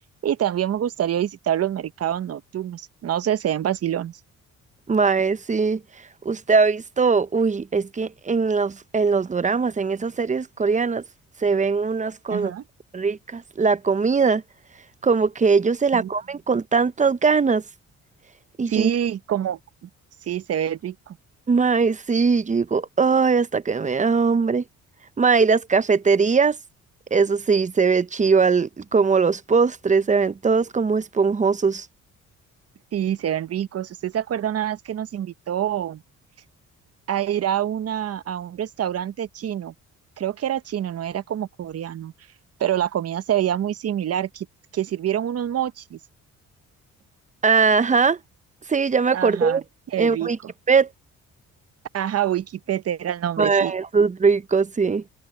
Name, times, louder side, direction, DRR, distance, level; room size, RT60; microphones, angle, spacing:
voice 1, 0.0-4.2 12.3-12.6 15.9-16.1 18.7-19.9 20.2-21.2 32.9-36.0 37.1-39.7 40.2-42.1 42.6-44.5 44.7-46.0 49.1-49.6 49.9-50.5 51.9-53.7, right 10 dB, 55° right, 1.0 m, -26 dB
voice 2, 4.9-5.8 6.2-11.0 11.4-12.5 12.9-14.4 15.0-17.6 18.6-18.9 21.5-24.6 25.2-26.6 27.1-31.9 47.4-48.2 48.7-49.6 50.0-50.4 50.7-50.9 53.4-55.0, right 5 dB, 25° right, 0.7 m, -20 dB
cardioid pair, 90°, 30 cm